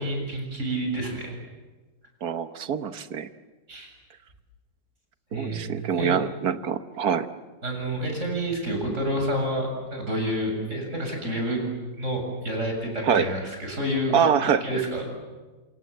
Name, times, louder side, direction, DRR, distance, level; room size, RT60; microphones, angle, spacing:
voice 1, 0.0-1.4 3.7-3.9 5.3-5.6 6.0-6.2 7.6-11.6 12.0-14.2 14.6-15.0, equal, 40° right, 2 dB, 7.9 m, -29 dB
voice 2, 2.2-3.3 5.3-7.3 13.0-13.3 14.1-14.8, right 7 dB, 60° right, 10 dB, 1.6 m, -25 dB
28.0 x 27.5 x 7.6 m, 1.2 s
omnidirectional pair, 1.9 m